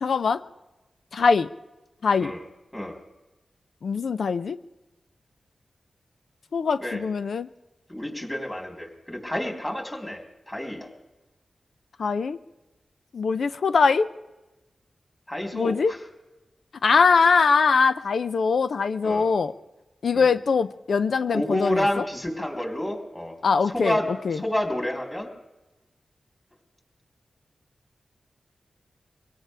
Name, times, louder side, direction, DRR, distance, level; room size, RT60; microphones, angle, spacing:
voice 1, 0.0-0.4 1.1-1.5 2.0-2.3 3.8-4.6 6.5-7.5 12.0-12.4 13.1-14.1 15.5-15.9 16.8-19.5 20.0-22.0 23.4-24.0 24.2-24.4, left 5 dB, 80° left, 13 dB, 0.5 m, -22 dB
voice 2, 7.9-10.9 15.3-16.0 19.0-19.3 20.1-20.3 21.3-23.4 23.7-25.3, left 1 dB, 15° left, 1 dB, 3.6 m, -29 dB
23.5 x 17.5 x 3.4 m, 1.0 s
wide cardioid pair, 70°, 0 cm